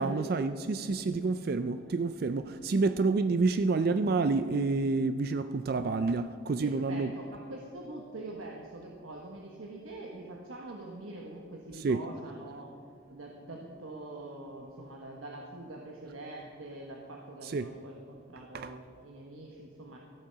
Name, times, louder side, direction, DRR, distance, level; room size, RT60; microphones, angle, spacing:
voice 1, 0.0-7.1 11.8-12.0 17.4-17.7 18.5-18.7, right 3 dB, 45° right, 11 dB, 0.4 m, -28 dB
voice 2, 6.6-12.7 13.1-20.0, right 2 dB, 80° right, 0 dB, 1.2 m, -44 dB
14.0 x 8.5 x 5.7 m, 2.5 s
head